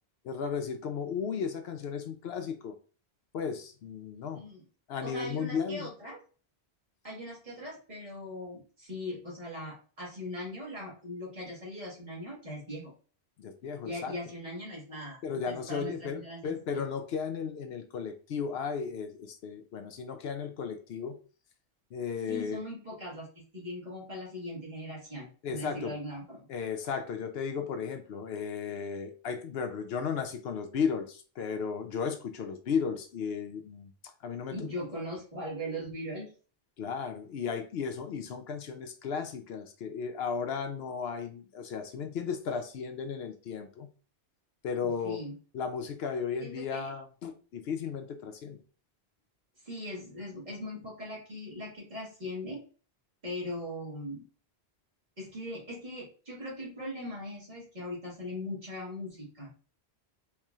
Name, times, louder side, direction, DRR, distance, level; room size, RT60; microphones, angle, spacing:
voice 1, 0.2-2.8 3.3-4.4 4.9-5.9 13.4-14.1 15.2-21.2 21.9-22.6 25.4-25.9 26.5-33.9 34.2-34.6 36.8-43.9 44.6-45.2 45.5-48.6, left 6 dB, 70° left, 0.8 m, -35 dB
voice 2, 5.0-6.2 7.0-12.9 13.8-16.8 22.3-23.3 23.5-26.5 34.5-36.3 44.8-45.4 46.4-46.9 49.6-52.6 53.2-54.3 55.2-59.5, left 1 dB, 45° right, 1.9 m, -40 dB
4.6 x 2.9 x 2.3 m
omnidirectional pair, 1.1 m